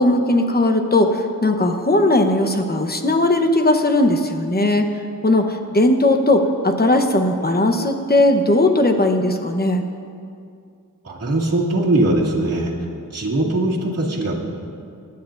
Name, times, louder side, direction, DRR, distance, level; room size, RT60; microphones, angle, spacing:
voice 1, 0.0-4.9 5.2-9.8, left 1 dB, 30° left, 5 dB, 1.0 m, -18 dB
voice 2, 11.0-12.7 13.1-14.3, right 2 dB, 45° right, -6 dB, 2.2 m, -20 dB
20.0 x 9.5 x 2.6 m, 2.4 s
wide cardioid pair, 75°, 33 cm